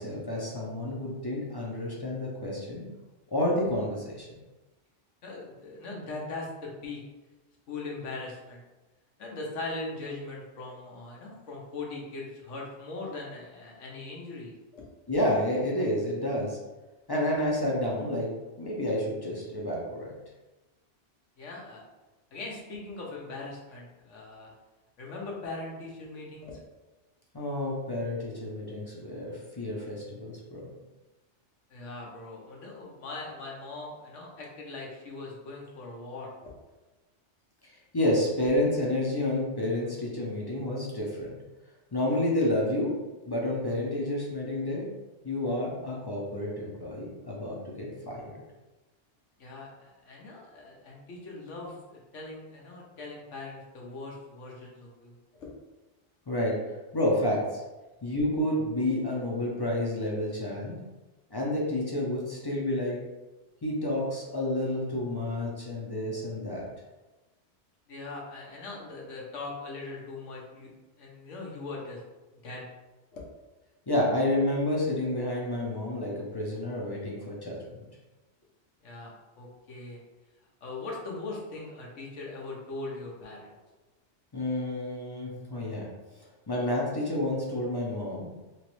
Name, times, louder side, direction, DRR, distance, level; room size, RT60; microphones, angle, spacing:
voice 1, 0.0-2.9 3.3-4.4 15.1-16.6 17.1-18.3 18.6-20.1 27.3-30.7 37.9-41.4 41.9-42.9 43.3-44.9 45.2-48.4 56.3-56.6 56.9-57.6 58.0-60.8 61.3-63.0 63.6-66.6 73.9-77.9 84.3-85.9 86.5-88.3, left 1 dB, 30° left, -4 dB, 0.5 m, -30 dB
voice 2, 5.2-7.0 7.7-8.6 9.2-14.8 21.4-21.8 22.3-24.5 25.0-26.6 31.7-36.5 49.4-55.5 67.9-70.7 71.0-72.0 72.4-72.6 73.1-73.2 78.8-80.0 80.6-83.5, left 3 dB, 85° left, -2 dB, 1.2 m, -40 dB
3.1 x 3.0 x 3.0 m, 1.1 s
omnidirectional pair, 1.2 m